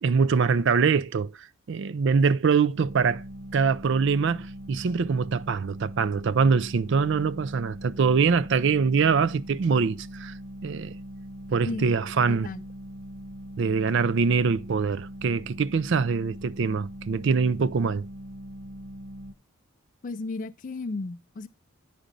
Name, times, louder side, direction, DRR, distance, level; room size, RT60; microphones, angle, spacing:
voice 1, 0.0-3.2 3.5-10.3 10.6-10.9 11.5-12.5 13.6-18.1, right 5 dB, 55° right, 0.4 m, -24 dB
sound 1, 2.8-19.3, equal, 75° right, 0.9 m, -41 dB
voice 2, 12.3-12.6 20.0-21.5, left 3 dB, 35° left, 0.4 m, -34 dB
10.0 x 5.1 x 5.2 m
head